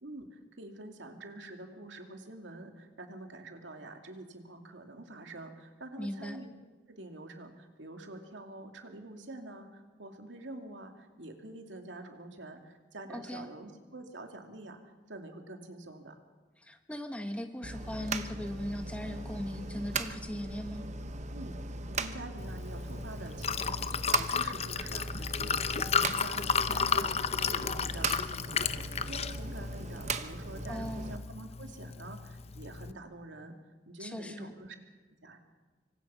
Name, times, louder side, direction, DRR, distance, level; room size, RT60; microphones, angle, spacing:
voice 1, 0.0-6.5 6.9-14.8 15.1-16.2 21.3-21.6 21.8-33.5 33.9-34.8 35.2-35.4, right 2 dB, 85° right, 4 dB, 2.7 m, -46 dB
voice 2, 6.0-6.4 13.1-13.5 16.6-20.9 30.7-31.1 34.0-34.5, equal, 5° left, 5 dB, 1.6 m, -39 dB
sound 1, 17.6-31.2, right 3 dB, 40° right, 1.0 m, -39 dB
Liquid, 22.4-32.9, left 6 dB, 35° left, 0.7 m, -33 dB
26.5 x 24.5 x 5.7 m, 1.3 s
head